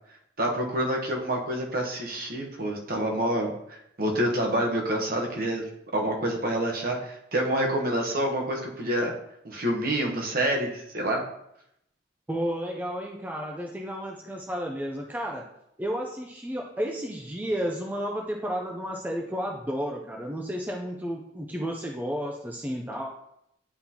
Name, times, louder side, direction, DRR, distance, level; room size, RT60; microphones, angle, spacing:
voice 1, 0.4-5.6 5.9-9.1 9.4-11.2, right 1 dB, 50° right, 1 dB, 1.0 m, -27 dB
voice 2, 12.3-15.5 15.8-23.1, equal, 10° right, 1 dB, 0.4 m, -32 dB
9.7 x 3.8 x 2.9 m, 0.78 s
head